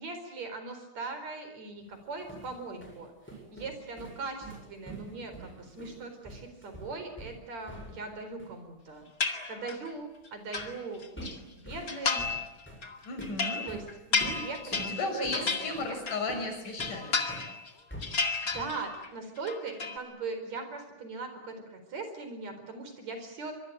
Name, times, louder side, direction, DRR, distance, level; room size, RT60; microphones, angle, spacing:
voice 1, 0.0-3.1 3.5-9.1 9.5-12.3 13.7-13.8 14.1-16.0 18.5-23.5, right 3 dB, 60° right, 7 dB, 5.5 m, -40 dB
sound 1, 1.9-8.1 8.4-8.6 10.6-10.8 11.2-17.5 17.9-18.8, right 1 dB, 5° left, 7.4 m, -46 dB
sound 2, 9.2-9.9 10.3-11.3 11.9-12.5 12.8-16.3 16.6-17.7 18.0-19.1 19.4-20.0, left 4 dB, 30° left, 2.2 m, -32 dB
voice 2, 13.0-13.6 14.7-17.2, left 3 dB, 85° left, 4 dB, 7.6 m, -34 dB
25.0 x 23.5 x 9.2 m, 0.89 s
omnidirectional pair, 3.6 m